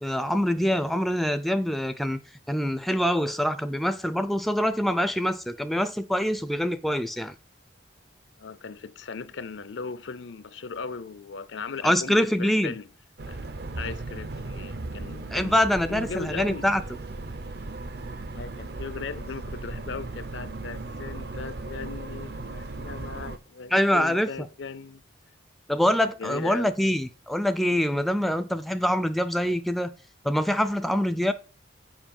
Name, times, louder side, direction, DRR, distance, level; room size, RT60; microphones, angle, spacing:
voice 1, 0.0-2.2 2.5-7.3 11.8-12.7 15.3-16.8 23.7-24.3 25.7-29.9 30.2-31.3, equal, ahead, 0.3 m, -25 dB
voice 2, 8.4-12.9 13.3-13.4 13.8-15.6 15.9-16.7 18.4-25.0 26.0-26.7, left 4 dB, 75° left, 0.6 m, -38 dB
sound 1, 13.2-23.4, right 2 dB, 55° right, 0.6 m, -37 dB
7.2 x 5.1 x 5.3 m
head